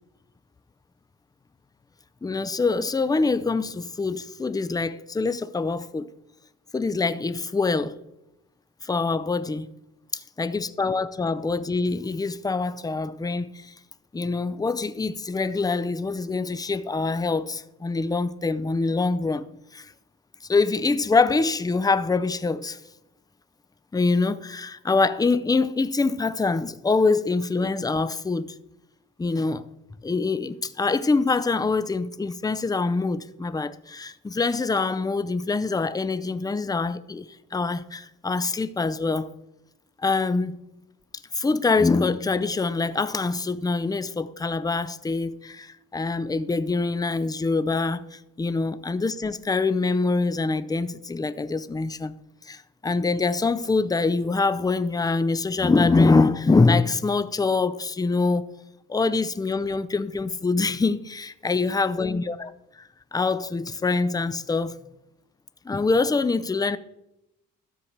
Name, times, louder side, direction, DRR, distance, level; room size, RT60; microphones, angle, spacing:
voice 1, 2.2-6.1 6.7-8.0 8.8-9.7 10.1-13.7 14.1-19.5 19.7-19.9 20.5-22.8 23.9-28.5 29.2-29.6 30.0-39.3 40.0-40.6 41.3-52.1 52.5-58.5 58.9-62.5 62.8-64.8 65.6-66.8, left 3 dB, 10° left, 0.5 m, -24 dB
13.0 x 4.7 x 7.3 m
cardioid pair, 90°, 30 cm